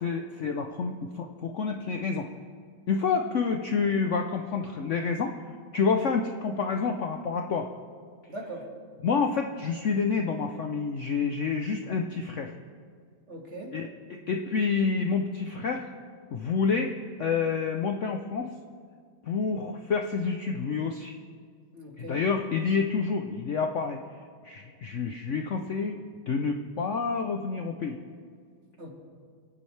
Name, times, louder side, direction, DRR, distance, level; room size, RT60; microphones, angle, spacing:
voice 1, 0.0-2.3 2.9-5.3 5.7-7.7 9.0-12.5 13.7-15.9 16.3-18.5 19.2-21.2 22.0-24.0 24.4-26.0 26.3-28.0, left 5 dB, 60° left, 4 dB, 0.8 m, -28 dB
voice 2, 8.3-8.7 13.3-13.8 21.7-22.2 28.8-29.0, right 1 dB, 40° right, 0 dB, 2.1 m, -40 dB
28.0 x 9.5 x 3.3 m, 2.1 s
omnidirectional pair, 1.9 m